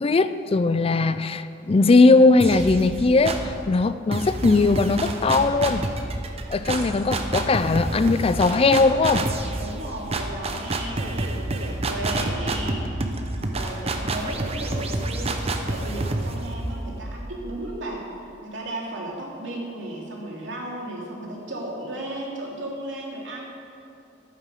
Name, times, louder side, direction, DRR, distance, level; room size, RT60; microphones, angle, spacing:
voice 1, 0.0-5.9 6.5-9.3, left 3 dB, 30° left, 13 dB, 0.4 m, -19 dB
sound 1, 2.4-3.6 4.1-17.8, right 2 dB, 35° right, 0.9 m, -29 dB
voice 2, 9.6-18.1 18.4-23.4, right 1 dB, 85° right, -3 dB, 3.0 m, -35 dB
12.5 x 9.3 x 6.5 m, 2.6 s
head